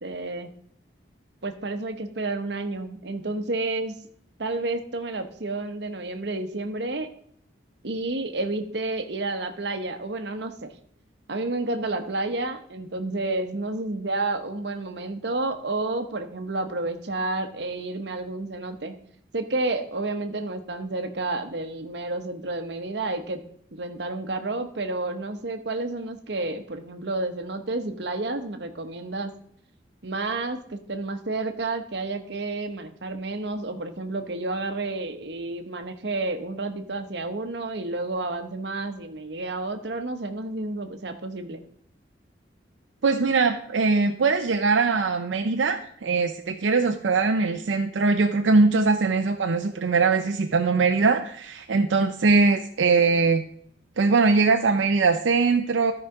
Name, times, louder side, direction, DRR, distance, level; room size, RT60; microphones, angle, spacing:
voice 1, 0.0-0.5 1.4-3.9 4.4-7.1 7.8-10.7 11.3-18.9 19.3-23.4 23.7-29.3 30.0-41.6, right 2 dB, 60° right, 8 dB, 0.9 m, -30 dB
voice 2, 43.0-53.4 54.0-55.9, right 4 dB, 80° right, 6 dB, 0.6 m, -21 dB
13.0 x 4.9 x 4.8 m, 0.65 s
head